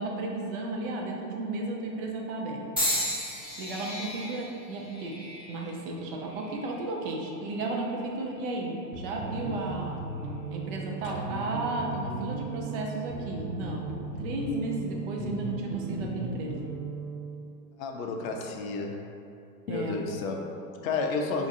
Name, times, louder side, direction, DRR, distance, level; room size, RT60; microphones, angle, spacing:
voice 1, 0.0-2.6 3.6-5.2 5.5-10.0 10.5-13.9 14.2-16.7 19.7-20.0, right 2 dB, 35° right, 0 dB, 0.5 m, -33 dB
sound 1, 2.8-6.9 7.6-8.0 9.0-9.2, equal, ahead, 0.9 m, -34 dB
sound 2, 8.9-17.4, right 2 dB, 70° right, 0.7 m, -37 dB
voice 2, 17.8-19.0 19.7-21.5, left 4 dB, 55° left, 2 dB, 0.5 m, -32 dB
4.4 x 2.3 x 2.6 m, 2.7 s
hypercardioid pair, 100°, 50 cm